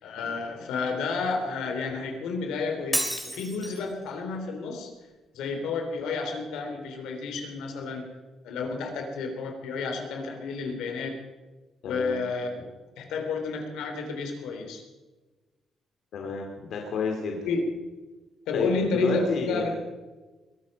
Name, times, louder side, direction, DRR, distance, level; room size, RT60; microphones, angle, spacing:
voice 1, 0.0-4.9 5.3-8.1 8.4-11.2 11.9-12.5 13.0-14.8 17.4-17.6 18.5-19.8, left 4 dB, 90° left, 4 dB, 3.3 m, -31 dB
Shatter, 2.9-3.9, equal, 5° right, 3.4 m, -30 dB
voice 2, 11.8-12.2 16.1-16.4 16.7-17.4 18.5-19.7, left 4 dB, 70° left, 1 dB, 2.5 m, -29 dB
21.5 x 12.5 x 5.3 m, 1.2 s
cardioid pair, 90°, 0 cm